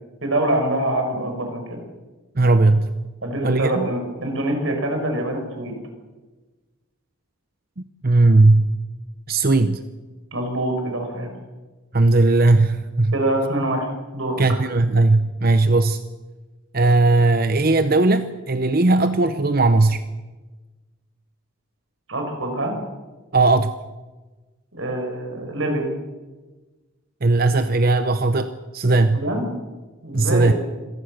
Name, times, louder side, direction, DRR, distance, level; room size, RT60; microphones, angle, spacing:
voice 1, 0.2-1.8 3.2-5.8 10.3-11.3 13.1-14.4 22.1-22.8 24.7-25.9 29.1-29.4 30.0-30.5, right 1 dB, 65° right, 3 dB, 5.7 m, -25 dB
voice 2, 2.4-2.9 3.4-3.9 8.0-8.8 9.3-9.8 11.9-13.1 14.4-16.0 16.7-20.0 23.3-23.7 27.2-29.3 30.1-30.5, right 2 dB, 45° right, 10 dB, 0.8 m, -17 dB
26.0 x 18.5 x 6.6 m, 1.2 s
head